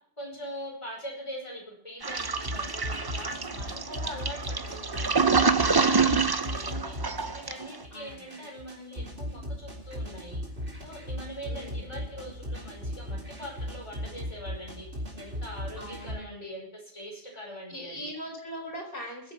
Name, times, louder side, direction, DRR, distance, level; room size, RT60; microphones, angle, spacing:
voice 1, 0.2-7.0 7.3-10.4 10.8-14.9 15.2-18.1, equal, 25° left, -1 dB, 5.4 m, -42 dB
Toilet flush, 2.0-7.8, right 4 dB, 25° right, 0.6 m, -26 dB
sound 1, 2.2-16.2, equal, 75° right, 4.2 m, -38 dB
voice 2, 7.9-8.5 11.4-11.9 15.8-16.5 17.7-19.3, equal, 55° left, 0 dB, 5.0 m, -41 dB
21.0 x 7.9 x 6.0 m, 0.64 s
omnidirectional pair, 1.1 m